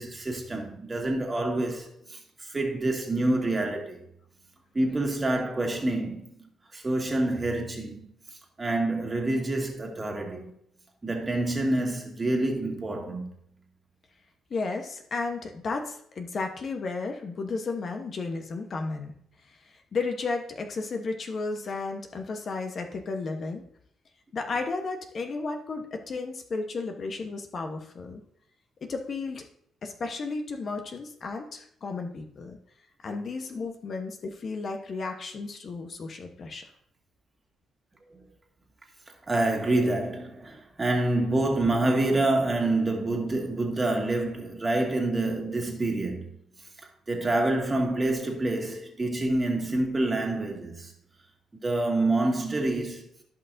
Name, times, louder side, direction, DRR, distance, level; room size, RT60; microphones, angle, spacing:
voice 1, 0.0-4.0 4.7-8.1 8.6-10.5 11.0-13.3 38.0-38.3 39.3-46.4 47.1-50.9 51.6-53.1, right 2 dB, 25° right, 2.0 m, -27 dB
voice 2, 14.5-19.1 19.9-23.6 24.3-28.2 28.8-29.5 29.8-32.6 33.0-36.7, left 3 dB, 50° left, 1.1 m, -33 dB
15.0 x 5.7 x 2.7 m
cardioid pair, 90°, 0 cm